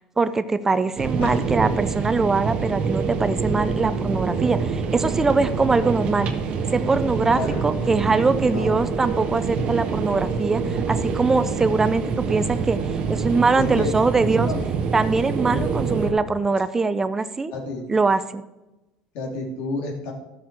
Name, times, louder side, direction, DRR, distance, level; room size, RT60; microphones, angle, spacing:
voice 1, 0.0-6.3 6.7-14.5 14.9-17.5 17.9-18.4, right 3 dB, 15° right, 13 dB, 0.4 m, -22 dB
sound 1, 1.0-16.1, right 5 dB, 45° right, 1.3 m, -26 dB
voice 2, 7.3-8.0 8.4-8.8 13.5-13.9 14.4-14.7 15.5-16.2 17.5-17.8 19.1-20.1, left 2 dB, 70° left, 1 dB, 2.8 m, -30 dB
13.5 x 6.1 x 4.7 m, 1.0 s
cardioid pair, 120°, 3 cm